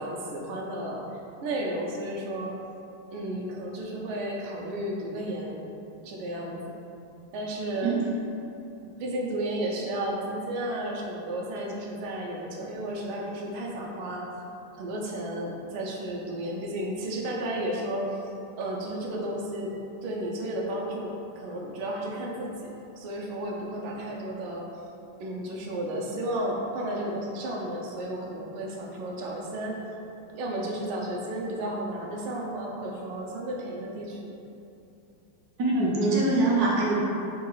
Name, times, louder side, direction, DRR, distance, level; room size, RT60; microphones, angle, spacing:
voice 1, 0.0-2.6 3.1-5.7 6.0-6.7 7.3-7.9 9.0-14.3 14.7-18.2 18.6-19.7 20.0-24.7 25.2-29.8 30.3-34.3, right 1 dB, 80° right, -2 dB, 1.5 m, -33 dB
voice 2, 35.6-37.0, right 2 dB, 65° right, -6 dB, 1.0 m, -23 dB
4.5 x 2.3 x 4.6 m, 2.7 s
omnidirectional pair, 2.3 m